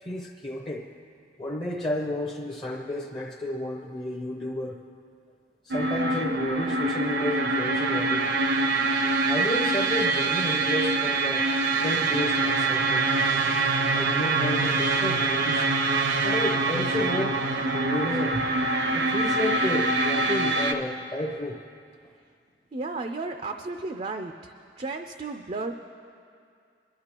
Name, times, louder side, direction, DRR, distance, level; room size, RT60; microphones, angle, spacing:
voice 1, 0.0-0.9 1.4-4.8 5.6-8.4 9.3-11.5 11.8-13.1 13.9-15.7 16.2-17.4 17.7-18.4 18.9-21.6, left 1 dB, 25° left, 1 dB, 0.6 m, -31 dB
sound 1, 5.7-20.7, right 3 dB, 80° right, 0.8 m, -25 dB
voice 2, 22.7-25.7, right 3 dB, 35° right, 5 dB, 0.4 m, -34 dB
22.0 x 11.5 x 2.9 m, 2.3 s
head